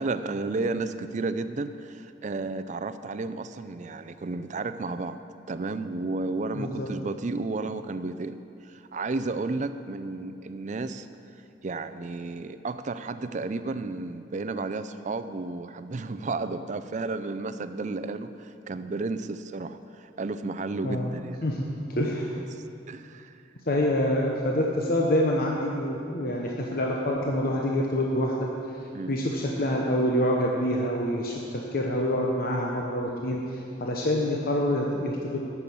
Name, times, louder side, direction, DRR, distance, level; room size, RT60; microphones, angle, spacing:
voice 1, 0.0-5.2 5.5-11.1 11.6-21.4 22.4-23.4 28.9-29.2, right 3 dB, 40° right, 11 dB, 0.4 m, -32 dB
voice 2, 6.5-6.9 20.8-21.1 21.4-21.6 22.0-22.3 23.7-28.5 29.1-35.4, left 1 dB, 55° left, -1 dB, 0.9 m, -26 dB
9.9 x 7.0 x 8.5 m, 2.6 s
head